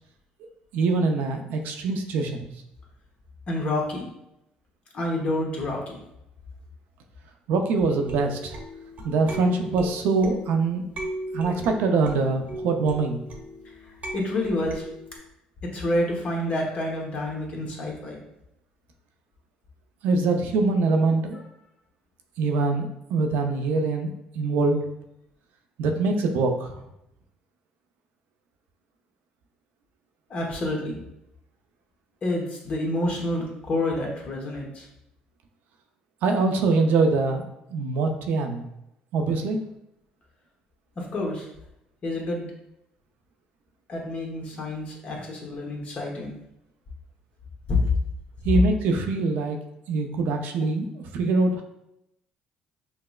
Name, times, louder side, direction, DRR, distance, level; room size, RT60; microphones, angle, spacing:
voice 1, 0.7-2.5 7.5-8.6 9.0-10.9 11.3-13.2 20.0-21.4 22.4-24.8 25.8-26.8 36.2-37.5 37.7-38.6 39.1-39.6 48.4-49.6 49.9-51.6, right 3 dB, 75° right, 4 dB, 0.5 m, -24 dB
voice 2, 3.5-4.1 4.9-6.0 13.9-14.8 15.7-18.2 30.3-31.0 32.2-34.9 41.0-41.5 42.0-42.5 43.9-46.3 47.7-47.8, left 1 dB, 45° left, -1 dB, 1.1 m, -28 dB
sound 1, 7.9-15.2, right 1 dB, 50° right, 0.9 m, -37 dB
5.7 x 2.0 x 2.3 m, 0.83 s
supercardioid pair, 80°, 3 cm